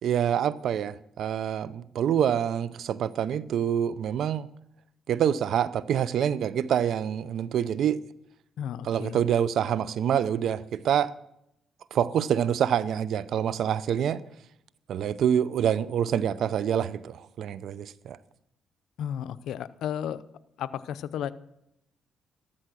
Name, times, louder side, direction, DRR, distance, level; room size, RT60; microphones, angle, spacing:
voice 1, 0.0-4.5 5.1-8.0 8.8-11.1 11.9-14.2 14.9-18.2, right 9 dB, 70° right, 0.7 m, -26 dB
voice 2, 8.6-9.2 19.0-20.2 20.6-21.3, left 9 dB, 80° left, 0.6 m, -33 dB
13.5 x 13.0 x 6.2 m
cardioid pair, 90°, 0 cm